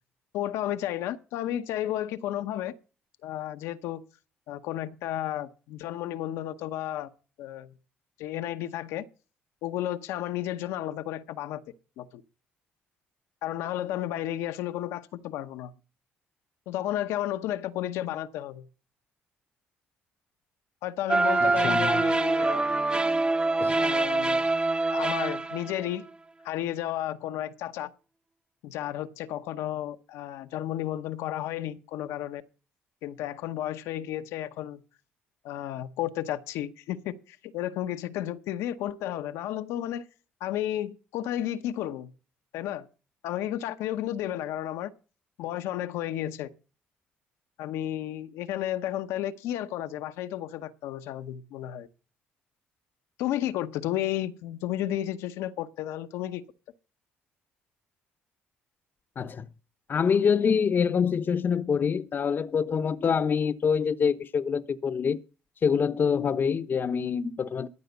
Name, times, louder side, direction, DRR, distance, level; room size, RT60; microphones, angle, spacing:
voice 1, 0.3-2.7 3.2-4.0 4.5-7.1 7.4-7.7 8.2-9.1 9.6-11.6 12.0-12.2 13.4-15.7 16.7-18.7 20.8-22.7 23.7-24.5 24.9-26.1 26.4-27.9 28.6-32.4 33.0-34.8 35.4-40.0 40.4-42.1 42.5-42.9 43.2-44.9 45.4-46.5 47.6-51.9 53.2-56.4, left 12 dB, 85° left, 0.8 m, -32 dB
sound 1, 21.1-25.9, right 2 dB, 20° right, 0.9 m, -25 dB
voice 2, 21.4-22.0 23.6-23.9 59.2-59.5 59.9-65.2 65.6-67.7, left 6 dB, 45° left, 0.8 m, -26 dB
14.0 x 5.0 x 8.0 m
supercardioid pair, 70°, 5 cm